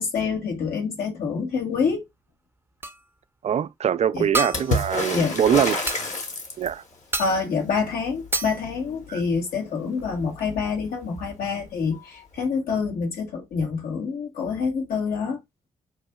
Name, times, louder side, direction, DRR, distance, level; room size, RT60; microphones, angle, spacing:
voice 1, 0.0-2.0 4.1-4.3 5.1-5.4 7.2-15.4, left 5 dB, 70° left, 1.5 m, -26 dB
sound 1, 2.8-3.1 4.3-4.9 5.9-6.0 7.1-7.5 8.3-8.6 10.0-10.1 10.4-10.5, right 2 dB, 15° right, 0.7 m, -28 dB
voice 2, 3.4-6.0 6.6-6.8 9.1-9.2, right 9 dB, 45° right, 0.3 m, -23 dB
Water / Splash splatter, 4.5-6.9 10.2-10.3 10.6-11.3 12.4-12.5, left 2 dB, 50° left, 1.4 m, -28 dB
6.1 x 2.7 x 2.2 m
hypercardioid pair, 40°, 16 cm